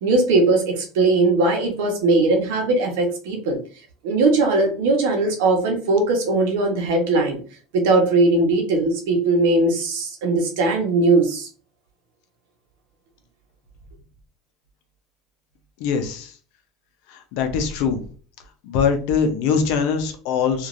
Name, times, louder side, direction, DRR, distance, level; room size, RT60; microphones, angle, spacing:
voice 1, 0.0-3.6 4.0-7.4 7.7-11.5, right 2 dB, 90° right, 2 dB, 1.0 m, -19 dB
voice 2, 15.8-16.3 17.1-18.0 18.6-20.7, left 6 dB, 70° left, 6 dB, 0.6 m, -22 dB
3.1 x 2.5 x 2.5 m, 0.41 s
cardioid pair, 140°, 0 cm